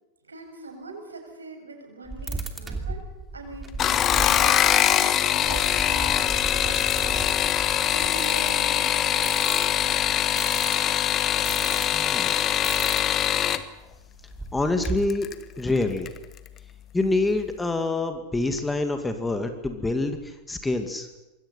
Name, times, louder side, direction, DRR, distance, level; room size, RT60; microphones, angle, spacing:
voice 1, 0.2-3.0 3.3-7.5 7.9-9.5, right 3 dB, 75° right, 3 dB, 7.4 m, -42 dB
sound 1, 2.1-12.0 12.6-13.3 13.6-13.7 13.9-15.1, right 2 dB, 10° right, 2.9 m, -35 dB
sound 2, 3.7-13.6 14.8-15.3 15.8-16.2 16.5-16.6, left 10 dB, 30° left, 1.4 m, -23 dB
voice 2, 11.9-12.4 14.5-15.3 15.6-16.1 16.9-21.1, left 2 dB, 10° left, 6 dB, 2.3 m, -26 dB
27.0 x 21.5 x 5.8 m, 1.1 s
figure-of-eight pair, 90°, 0 cm